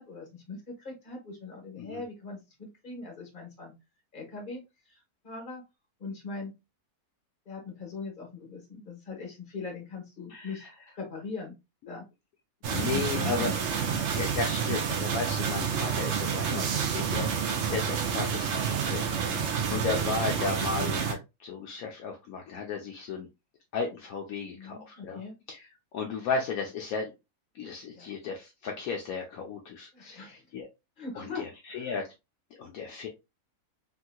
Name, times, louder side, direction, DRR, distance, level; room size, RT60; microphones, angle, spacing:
voice 1, 0.0-3.7 4.1-5.6 6.0-6.5 7.4-10.6 10.9-11.5 11.9-12.0 12.7-13.6 17.1-17.4 19.3-19.5 24.5-25.4 27.9-28.1 29.9-30.4 31.0-31.9, left 4 dB, 35° left, 1 dB, 1.3 m, -41 dB
sound 1, 12.6-21.1, right 7 dB, 60° right, 0.8 m, -29 dB
voice 2, 12.7-13.5 14.1-23.3 23.7-25.2 25.5-25.6 25.9-27.1 27.6-30.7 31.2-32.1 32.6-33.1, left 5 dB, 70° left, 2 dB, 1.0 m, -34 dB
3.5 x 2.8 x 2.2 m, 0.23 s
omnidirectional pair, 1.6 m